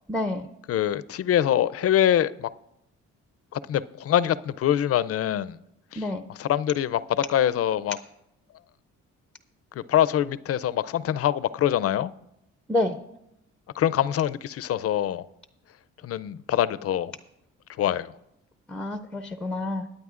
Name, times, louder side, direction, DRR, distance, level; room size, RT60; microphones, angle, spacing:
voice 1, 0.1-0.5 6.0-6.2 12.7-12.9 18.7-19.9, left 1 dB, 5° left, 0.5 m, -28 dB
voice 2, 0.7-2.5 3.5-5.6 5.9-8.0 9.8-12.1 13.8-15.2 16.0-17.1 17.8-18.1, left 11 dB, 50° left, 0.5 m, -24 dB
21.5 x 8.9 x 2.5 m
cardioid pair, 90°, 30 cm